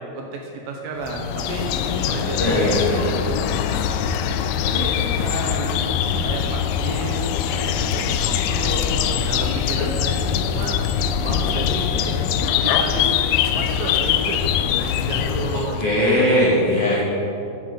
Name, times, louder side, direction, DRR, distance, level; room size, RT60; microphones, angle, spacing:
voice 1, 0.0-3.4 3.7-10.8 11.2-12.2 12.6-13.2 13.5-14.6 14.8-16.2, right 2 dB, 75° right, 1 dB, 2.5 m, -32 dB
sound 1, 1.0-15.9, left 8 dB, 80° left, 2.3 m, -23 dB
voice 2, 2.4-3.0 15.8-17.0, left 1 dB, 50° left, -8 dB, 1.9 m, -19 dB
10.0 x 7.4 x 5.5 m, 2.8 s
omnidirectional pair, 4.7 m